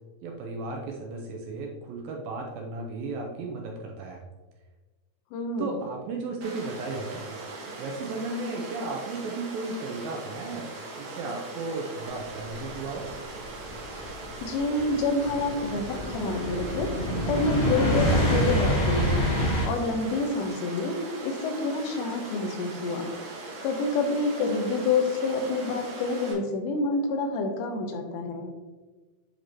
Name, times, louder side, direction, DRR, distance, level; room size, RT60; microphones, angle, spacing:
voice 1, 0.2-4.2 5.6-7.3 7.8-10.7 11.0-13.1, right 3 dB, 85° right, 0 dB, 2.1 m, -34 dB
voice 2, 5.3-5.8 14.4-21.0 21.2-23.1 23.6-28.5, left 3 dB, 85° left, 3 dB, 3.1 m, -28 dB
Water, 6.4-26.3, right 3 dB, 60° right, 2.3 m, -40 dB
sound 1, 12.6-19.7, equal, 65° left, 1.3 m, -27 dB
8.1 x 5.1 x 2.9 m, 1.3 s
omnidirectional pair, 5.0 m